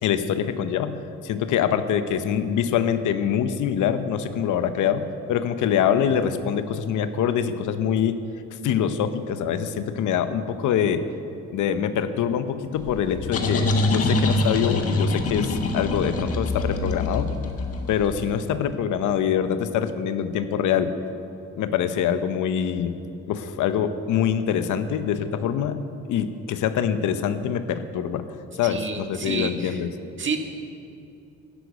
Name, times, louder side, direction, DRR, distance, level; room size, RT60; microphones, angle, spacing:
voice 1, 0.0-8.2 8.6-11.0 11.5-17.4 17.9-20.9 21.6-23.0 23.3-25.8 26.1-28.3 28.6-29.9, left 8 dB, 80° left, 11 dB, 0.9 m, -24 dB
sound 1, 12.8-18.3, left 2 dB, 50° left, 1.5 m, -25 dB
voice 2, 28.6-29.8 30.2-30.4, right 5 dB, 40° right, 4 dB, 1.6 m, -29 dB
12.5 x 8.0 x 9.3 m, 2.7 s
cardioid pair, 90°, 30 cm